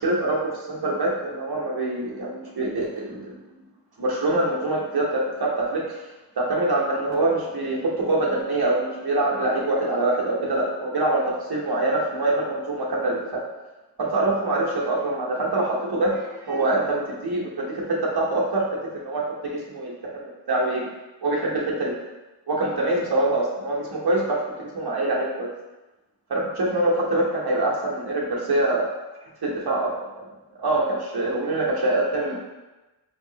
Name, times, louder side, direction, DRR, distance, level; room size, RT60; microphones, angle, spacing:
voice 1, 0.0-3.4 4.0-6.0 6.4-13.4 14.0-18.6 19.0-19.9 20.2-20.9 21.2-21.9 22.5-25.5 26.3-28.9 29.4-29.9 30.6-32.4, right 2 dB, 60° right, -3 dB, 0.9 m, -24 dB
5.1 x 2.7 x 2.8 m, 1.1 s
wide cardioid pair, 95°, 44 cm